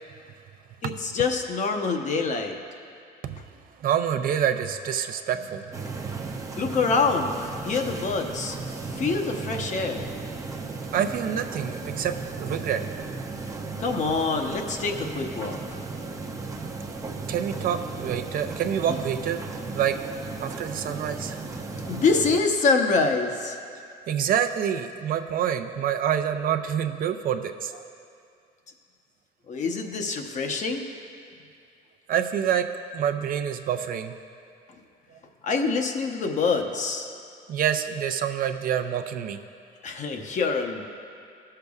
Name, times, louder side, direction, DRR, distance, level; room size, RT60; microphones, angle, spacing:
voice 1, 0.8-2.6 6.6-7.4 7.6-8.6 9.0-10.1 13.8-15.8 21.8-23.6 29.5-30.9 35.4-37.1 39.8-40.8, left 4 dB, 45° left, 4 dB, 0.8 m, -25 dB
voice 2, 3.8-5.7 6.0-6.1 10.9-12.1 12.4-12.8 17.3-19.4 19.7-20.0 20.4-21.4 24.1-27.8 32.1-32.7 32.9-34.1 37.5-39.4, right 9 dB, 55° right, 6 dB, 0.5 m, -27 dB
sound 1, 5.7-22.4, right 3 dB, 20° right, 0.7 m, -35 dB
18.5 x 6.7 x 2.4 m, 2.4 s
cardioid pair, 110°, 17 cm